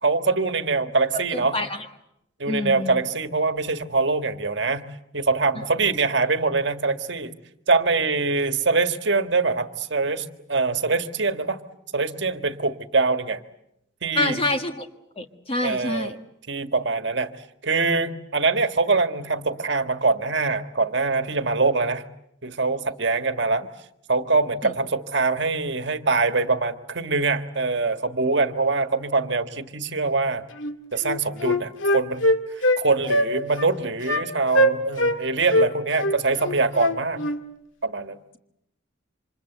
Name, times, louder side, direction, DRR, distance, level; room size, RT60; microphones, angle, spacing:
voice 1, 0.0-1.6 2.4-4.8 5.1-7.3 7.7-11.6 11.9-13.4 14.0-14.4 15.6-16.2 16.5-17.3 17.6-22.0 22.4-23.6 24.1-30.4 30.9-32.2 32.8-37.2 37.8-38.2, right 3 dB, 60° right, 9 dB, 1.6 m, -23 dB
voice 2, 1.1-1.8 2.5-3.1 14.1-14.9 15.2-16.2 24.6-24.7, left 2 dB, 30° left, 6 dB, 1.5 m, -27 dB
Wind instrument woodwind instrument, 30.6-30.7 31.0-32.8 33.1-33.3 33.6-33.7 34.1-34.2 34.5-35.2 35.5-37.4, equal, 70° left, 2.0 m, -21 dB
28.5 x 26.0 x 8.0 m, 0.81 s
head